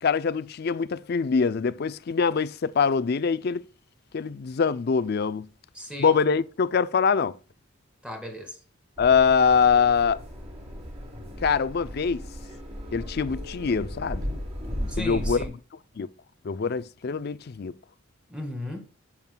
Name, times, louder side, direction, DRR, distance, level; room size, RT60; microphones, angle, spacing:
voice 1, 0.0-3.6 4.1-5.5 6.0-7.4 9.0-10.2 11.4-12.2 12.9-14.2 15.0-15.5 16.0-16.1 16.4-17.8, left 5 dB, 50° left, 0.4 m, -23 dB
voice 2, 5.7-6.1 8.0-8.6 14.9-15.5 17.1-17.2 18.3-18.8, left 1 dB, 5° right, 2.0 m, -36 dB
sound 1, 9.0-15.5, equal, 30° right, 2.8 m, -36 dB
10.5 x 7.2 x 2.2 m
head